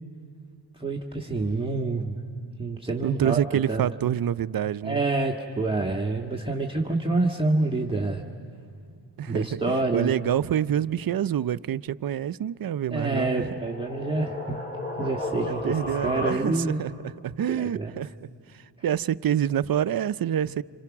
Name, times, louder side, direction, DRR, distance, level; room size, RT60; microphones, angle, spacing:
voice 1, 0.8-2.2 2.6-3.4 3.7-3.9 4.8-8.2 9.3-10.1 12.9-14.6 15.0-15.6 16.0-16.8 17.5-18.0 20.5-20.6, right 3 dB, 10° right, 1.6 m, -27 dB
voice 2, 3.0-5.0 9.2-13.6 15.4-16.9 17.2-20.6, right 10 dB, 50° right, 0.6 m, -27 dB
sound 1, 13.1-16.9, left 2 dB, 20° left, 3.5 m, -34 dB
29.5 x 27.0 x 6.0 m
cardioid pair, 65°, 46 cm